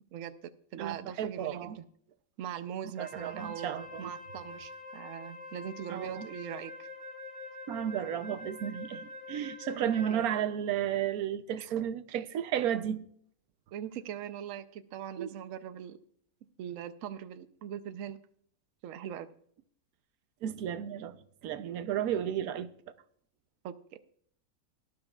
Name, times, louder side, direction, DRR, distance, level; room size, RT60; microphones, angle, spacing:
voice 1, 0.1-1.8 2.4-6.9 9.7-10.2 11.6-11.7 13.7-16.0 16.6-18.2 18.8-19.3 23.6-24.0, right 9 dB, 70° right, 1.0 m, -41 dB
voice 2, 0.7-1.8 3.0-4.1 5.9-6.3 7.7-13.0 15.2-15.3 20.4-21.2 21.4-22.7, right 10 dB, 90° right, 1.2 m, -33 dB
Wind instrument woodwind instrument, 2.9-10.6, left 2 dB, 40° left, 2.5 m, -45 dB
17.5 x 11.5 x 2.3 m
omnidirectional pair, 1.5 m